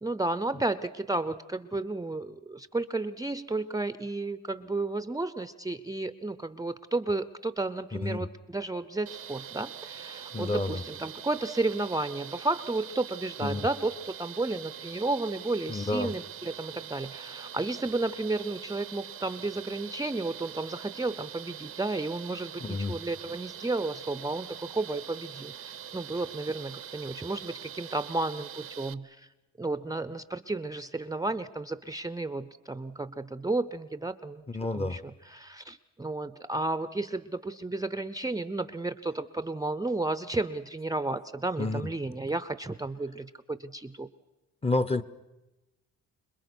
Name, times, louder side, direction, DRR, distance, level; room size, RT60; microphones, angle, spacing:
voice 1, 0.0-29.3 29.6-34.4 34.7-44.1, right 2 dB, 10° right, 13 dB, 0.7 m, -32 dB
voice 2, 7.9-8.3 10.3-10.8 13.4-13.7 15.7-16.1 22.6-23.0 34.5-35.0 41.6-41.9 44.6-45.0, left 2 dB, 20° left, 14 dB, 0.9 m, -30 dB
sound 1, 9.1-28.9, right 9 dB, 50° right, 0.8 m, -43 dB
27.0 x 21.0 x 6.2 m, 1.0 s
cardioid pair, 90°, 30 cm